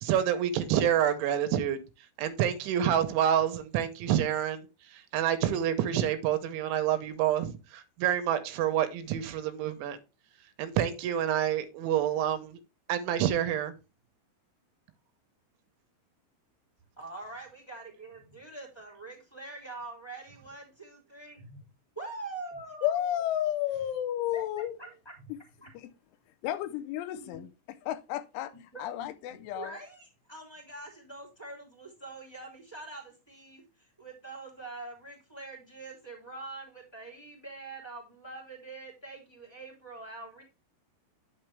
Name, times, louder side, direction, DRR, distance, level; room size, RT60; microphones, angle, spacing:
voice 1, 0.0-1.8 2.2-4.7 4.9-10.0 10.6-12.6 12.9-13.7, right 10 dB, 80° right, 3.1 m, -28 dB
voice 2, 17.0-21.7 21.9-23.2 24.3-25.3 25.6-25.7 27.2-27.4 28.7-40.4, right 3 dB, 10° left, 1.7 m, -44 dB
voice 3, 22.8-24.8 25.7-25.9 26.4-28.5 28.8-29.8, left 12 dB, 85° left, 3.0 m, -32 dB
9.9 x 6.1 x 3.3 m
omnidirectional pair, 5.6 m